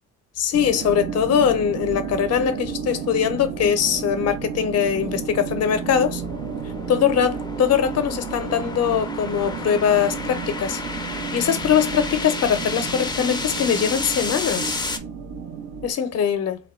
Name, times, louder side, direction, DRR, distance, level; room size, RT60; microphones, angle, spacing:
voice 1, 0.4-6.2 6.9-10.8 11.3-14.8 15.8-16.6, left 8 dB, 55° left, 0.6 m, -22 dB
sound 1, 0.5-15.9, right 7 dB, 90° right, 0.6 m, -32 dB
sound 2, 1.7-15.0, left 3 dB, 15° left, 0.4 m, -33 dB
2.3 x 2.1 x 3.5 m
cardioid pair, 90°, 30 cm